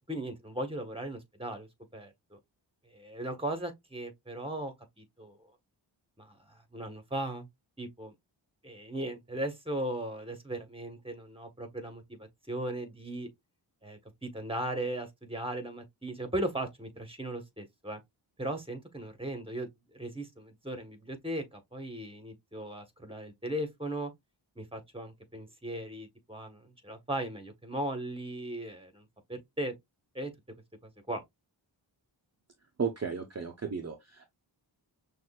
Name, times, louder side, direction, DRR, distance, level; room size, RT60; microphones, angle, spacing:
voice 1, 0.1-2.4 2.9-5.4 6.2-7.5 7.8-8.1 8.6-13.3 13.8-18.0 18.4-24.1 24.5-29.7 30.1-30.3 31.1-31.2, right 1 dB, 10° right, 1.4 m, -37 dB
voice 2, 32.8-34.3, right 6 dB, 35° right, 0.8 m, -34 dB
6.1 x 2.7 x 2.4 m
cardioid pair, 60°, 46 cm